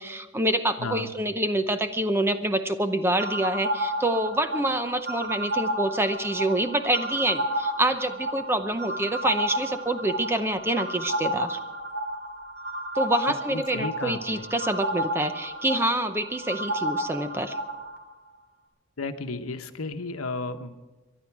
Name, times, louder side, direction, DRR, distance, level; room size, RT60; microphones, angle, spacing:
voice 1, 0.0-11.6 12.9-17.6, right 1 dB, 10° right, 9 dB, 0.7 m, -26 dB
voice 2, 0.8-1.1 13.3-14.4 19.0-20.7, left 3 dB, 80° left, 8 dB, 1.1 m, -33 dB
sound 1, 3.2-18.0, right 1 dB, 50° right, 2.7 m, -31 dB
23.5 x 11.0 x 4.7 m, 1.2 s
head